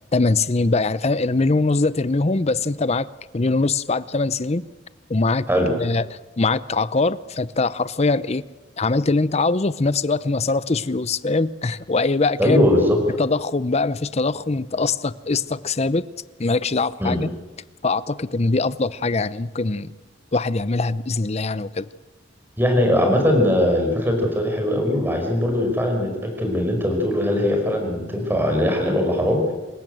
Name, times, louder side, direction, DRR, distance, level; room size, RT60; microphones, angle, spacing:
voice 1, 0.1-3.1 3.3-4.6 5.1-8.4 8.8-12.6 13.1-16.1 16.4-17.3 17.8-19.9 20.3-21.9, left 3 dB, 35° left, 0.7 m, -22 dB
voice 2, 12.4-13.0 17.0-17.2 22.6-29.4, left 1 dB, 10° right, 5.3 m, -20 dB
27.0 x 15.5 x 7.9 m
head